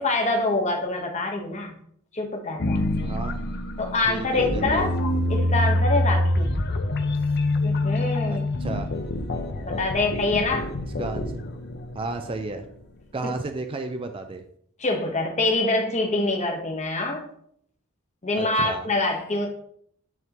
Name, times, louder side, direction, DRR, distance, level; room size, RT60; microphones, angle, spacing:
voice 1, 0.0-1.7 2.1-2.9 3.8-6.5 7.6-8.7 9.6-10.7 13.2-13.3 14.8-17.3 18.2-19.5, left 2 dB, 35° left, 2 dB, 1.0 m, -25 dB
sound 1, 2.6-12.7, left 1 dB, 50° left, 0.7 m, -26 dB
voice 2, 3.0-3.5 4.1-4.9 8.3-8.9 11.0-11.4 11.9-12.6 13.1-14.4 18.4-18.9, right 3 dB, 25° right, 7 dB, 0.4 m, -32 dB
9.2 x 3.5 x 2.9 m, 0.66 s
head